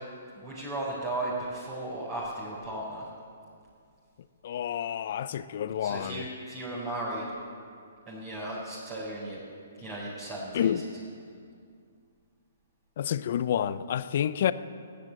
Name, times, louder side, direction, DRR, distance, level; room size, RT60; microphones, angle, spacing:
voice 1, 0.3-3.0 5.8-7.3 8.1-9.4 9.8-10.7, right 1 dB, 25° right, 4.7 m, -35 dB
voice 2, 4.4-6.3 10.5-10.9 13.0-14.5, left 9 dB, 55° left, 0.6 m, -29 dB
14.5 x 10.5 x 9.0 m
hypercardioid pair, 140°, 0 cm